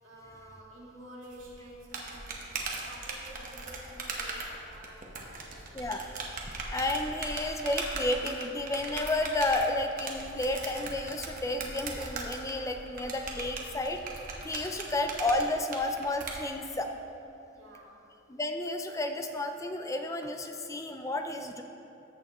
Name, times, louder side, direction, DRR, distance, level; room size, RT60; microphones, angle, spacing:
voice 1, 0.0-6.0 14.6-14.8 17.5-18.0, right 1 dB, 80° right, -4 dB, 2.0 m, -51 dB
sound 1, 1.3-16.3, right 3 dB, 45° right, 1.0 m, -39 dB
voice 2, 5.7-6.1 6.7-14.0 14.4-16.9 18.3-21.6, left 2 dB, 15° left, 5 dB, 0.4 m, -31 dB
14.0 x 6.7 x 3.0 m, 2.9 s
head